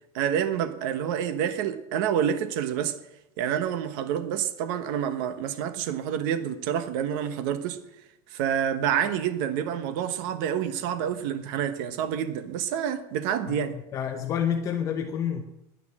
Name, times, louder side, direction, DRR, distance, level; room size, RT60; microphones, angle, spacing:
voice 1, 0.1-3.0 3.4-7.8 8.3-13.8, right 9 dB, 65° right, 1.1 m, -28 dB
voice 2, 13.9-15.4, left 8 dB, 25° left, 0.9 m, -28 dB
10.5 x 9.8 x 7.5 m
cardioid pair, 175°, 12 cm